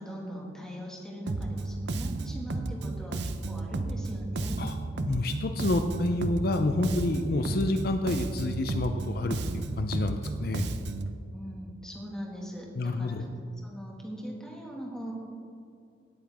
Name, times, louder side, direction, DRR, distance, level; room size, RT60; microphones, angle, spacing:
voice 1, 0.0-4.6 11.3-13.2 13.6-15.1, equal, 5° left, -2 dB, 1.9 m, -41 dB
Bass guitar, 1.3-11.2, right 2 dB, 65° right, 0.6 m, -33 dB
voice 2, 5.1-10.6 12.8-13.3, left 2 dB, 55° left, 7 dB, 0.6 m, -29 dB
17.5 x 8.9 x 3.6 m, 2.5 s
head